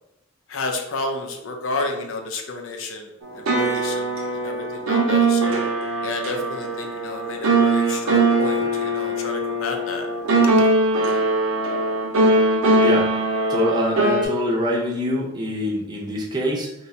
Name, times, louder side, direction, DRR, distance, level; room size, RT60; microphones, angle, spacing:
voice 1, 0.5-5.6 6.0-10.1 10.6-10.7, left 3 dB, 70° left, 3 dB, 0.5 m, -31 dB
sound 1, 3.2-14.2, right 2 dB, 85° right, 0.6 m, -21 dB
voice 2, 12.8-13.1 13.5-16.7, equal, 20° right, -3 dB, 0.6 m, -24 dB
2.8 x 2.2 x 4.1 m, 0.85 s
head